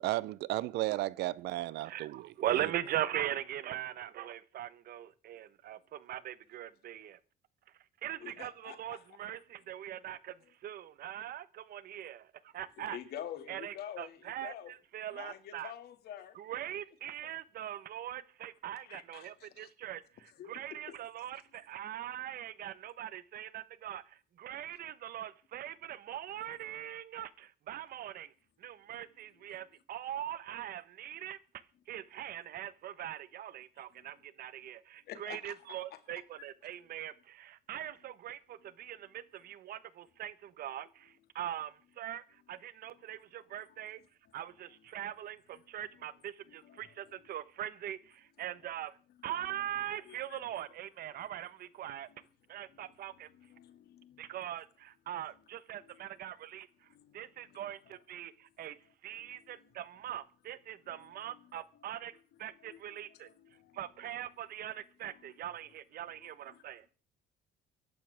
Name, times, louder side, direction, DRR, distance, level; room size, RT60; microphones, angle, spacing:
voice 1, 0.0-2.3 2.5-2.7, right 17 dB, 80° right, 0.7 m, -34 dB
voice 2, 1.8-7.2 8.0-13.0 13.5-15.7 16.3-28.3 28.6-31.4 31.9-44.0 44.3-49.0 49.2-52.1 52.5-53.3 54.2-56.9 57.1-63.3 63.7-66.9, right 11 dB, 60° right, 1.1 m, -41 dB
voice 3, 8.2-9.0 12.8-14.7 15.1-16.4 18.8-19.7 20.4-20.5 20.9-21.0 35.1-35.5 46.7-46.8 50.1-50.2 52.1-52.2 52.7-52.9 53.4-54.2 55.8-56.0 56.9-57.2 57.5-57.6 57.9-58.0 59.2-59.7 62.6-63.8 66.2-66.6, left 10 dB, 70° left, 2.2 m, -48 dB
24.0 x 11.5 x 3.5 m
cardioid pair, 110°, 17 cm